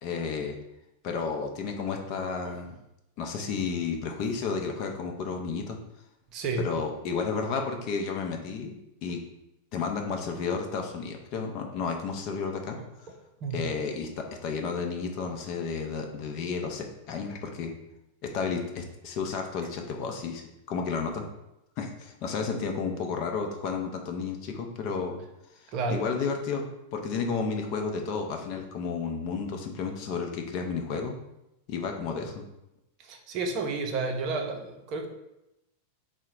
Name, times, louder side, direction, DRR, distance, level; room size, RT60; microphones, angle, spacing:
voice 1, 0.0-0.6 1.0-2.8 3.2-5.8 6.6-8.7 9.0-9.2 9.7-12.8 13.5-17.7 18.2-21.2 21.8-25.2 25.6-26.7 26.9-31.2 31.7-32.4, left 5 dB, 40° left, 3 dB, 0.5 m, -32 dB
voice 2, 6.3-6.7 13.4-13.6 25.7-26.0 33.0-35.1, right 3 dB, 40° right, 3 dB, 0.5 m, -31 dB
3.7 x 2.1 x 4.4 m, 0.88 s
figure-of-eight pair, 90°, 0 cm